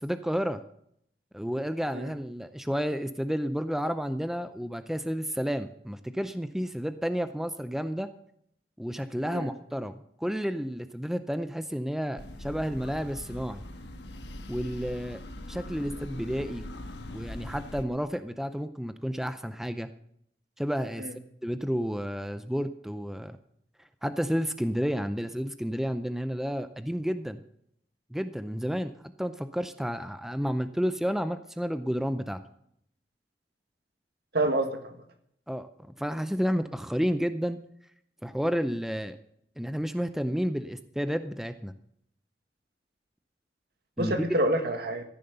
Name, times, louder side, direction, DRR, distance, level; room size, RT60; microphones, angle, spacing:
voice 1, 0.0-0.6 1.3-8.1 8.8-13.6 14.5-15.2 15.5-16.6 17.1-19.9 20.6-21.1 21.4-23.4 24.0-27.4 28.1-28.9 29.2-32.4 35.5-37.6 38.2-39.2 39.6-41.7 44.0-44.1, equal, ahead, 10 dB, 0.5 m, -31 dB
sound 1, 12.2-17.8, left 1 dB, 70° left, 1.4 m, -41 dB
voice 2, 34.3-35.0 44.0-45.0, right 1 dB, 60° right, 6 dB, 1.8 m, -27 dB
14.5 x 10.5 x 6.7 m, 0.71 s
head